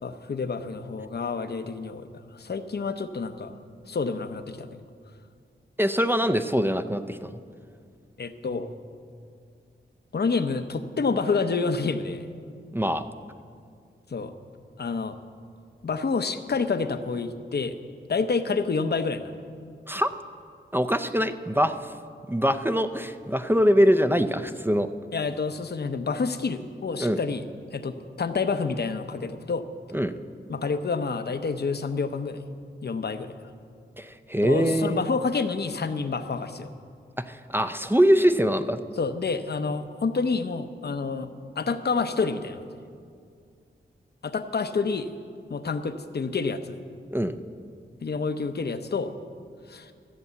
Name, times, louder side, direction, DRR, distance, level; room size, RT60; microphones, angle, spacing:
voice 1, 0.0-2.1 2.3-3.5 3.9-4.8 8.2-8.7 10.1-12.3 14.1-14.3 14.8-15.1 15.8-17.8 18.1-19.3 25.1-27.4 27.7-29.6 30.5-32.4 32.8-33.3 34.4-36.7 39.0-41.3 41.6-42.6 44.2-45.1 45.5-46.8 48.0-49.1 49.7-49.9, left 4 dB, 55° left, 9 dB, 0.7 m, -28 dB
voice 2, 5.8-7.3 12.7-13.0 19.9-20.1 20.7-21.9 22.3-24.9 27.0-27.2 29.9-30.1 34.0-35.0 37.2-38.8 47.1-47.3, equal, 10° right, 10 dB, 0.5 m, -23 dB
13.5 x 7.0 x 8.2 m, 2.3 s
wide cardioid pair, 70°, 20 cm